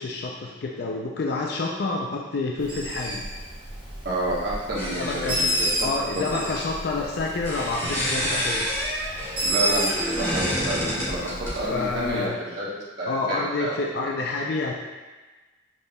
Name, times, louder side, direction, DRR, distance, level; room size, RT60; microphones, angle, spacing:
voice 1, 0.0-3.2 5.0-8.7 11.7-12.4 13.1-14.7, left 3 dB, 55° left, -1 dB, 0.4 m, -28 dB
Bird, 2.6-12.2, right 1 dB, 25° right, 0.8 m, -31 dB
voice 2, 4.0-5.7 6.3-6.4 9.4-11.3 11.5-13.8, right 1 dB, 60° right, -7 dB, 1.0 m, -29 dB
sound 1, 4.7-5.8 7.3-11.6, equal, 15° left, 1.2 m, -29 dB
6.3 x 3.5 x 2.2 m, 1.2 s
head